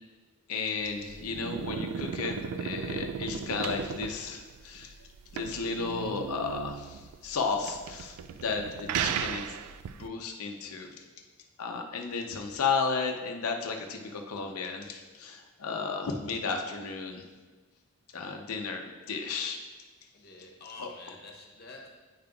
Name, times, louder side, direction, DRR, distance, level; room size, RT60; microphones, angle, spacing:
voice 1, 0.5-4.9 5.3-9.4 9.9-10.9 11.6-17.2 18.1-19.6 20.8-20.9, left 5 dB, 80° left, 3 dB, 0.6 m, -33 dB
sound 1, 0.8-10.1, right 7 dB, 80° right, 0.3 m, -36 dB
voice 2, 20.1-21.9, left 3 dB, 45° left, -1 dB, 1.0 m, -47 dB
9.5 x 5.2 x 2.3 m, 1.3 s
head